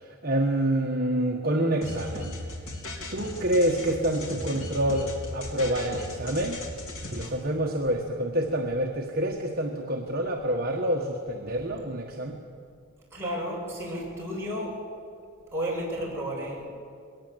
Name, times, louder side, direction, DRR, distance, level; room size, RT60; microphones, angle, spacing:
voice 1, 0.0-2.3 3.1-6.6 7.1-12.4, right 1 dB, 40° right, -1 dB, 1.5 m, -27 dB
sound 1, 1.8-7.3, left 1 dB, 70° left, 3.6 m, -37 dB
voice 2, 13.1-14.8 15.5-16.7, equal, 10° right, -4 dB, 6.4 m, -32 dB
21.5 x 18.5 x 8.0 m, 2.3 s
head